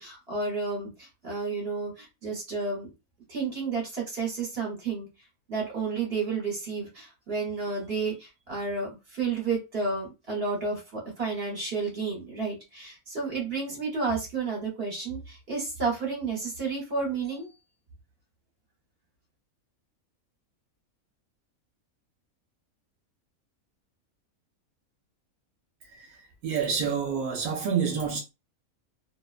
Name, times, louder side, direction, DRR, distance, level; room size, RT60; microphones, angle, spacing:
voice 1, 0.0-2.9 3.3-5.1 5.5-17.5, right 4 dB, 45° right, 1.1 m, -31 dB
voice 2, 26.4-28.2, right 6 dB, 80° right, 1.0 m, -28 dB
2.6 x 2.2 x 2.4 m
omnidirectional pair, 1.5 m